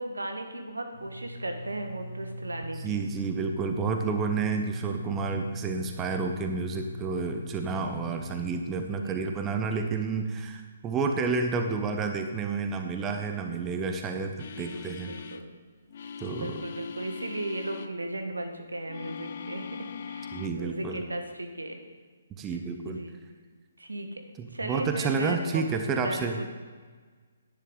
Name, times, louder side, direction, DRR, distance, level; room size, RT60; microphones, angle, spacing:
voice 1, 0.0-3.0 9.0-9.2 14.5-15.5 16.0-21.8 22.8-23.2 23.8-24.2 24.5-25.6 25.9-26.4, right 1 dB, 80° right, 5 dB, 1.3 m, -36 dB
sound 1, 0.9-8.5, equal, 85° left, 3.3 m, -40 dB
voice 2, 2.8-15.1 16.2-16.6 20.3-21.0 22.4-23.0 24.4-26.4, right 4 dB, 20° right, 5 dB, 0.8 m, -30 dB
sound 2, 14.4-15.5 15.9-17.9 18.9-20.6 21.0-21.2, left 7 dB, 50° left, 0.5 m, -41 dB
10.5 x 10.0 x 3.8 m, 1.5 s
figure-of-eight pair, 135°, 0 cm